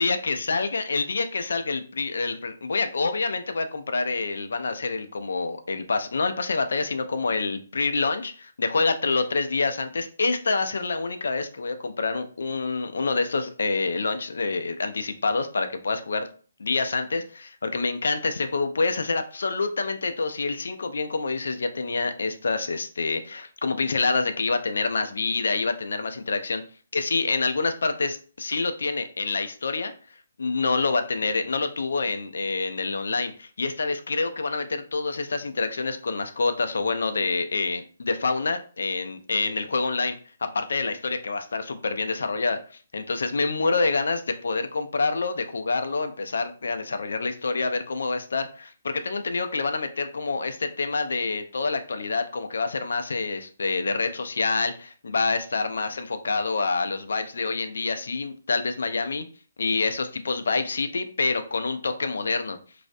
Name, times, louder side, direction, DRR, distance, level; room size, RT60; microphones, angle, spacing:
voice 1, 0.0-16.3 16.6-26.6 26.9-29.9 30.4-40.1 40.4-42.6 42.9-59.2 59.6-62.6, left 3 dB, 75° left, 8 dB, 0.3 m, -27 dB
2.4 x 2.1 x 2.5 m, 0.40 s
hypercardioid pair, 145°, 0 cm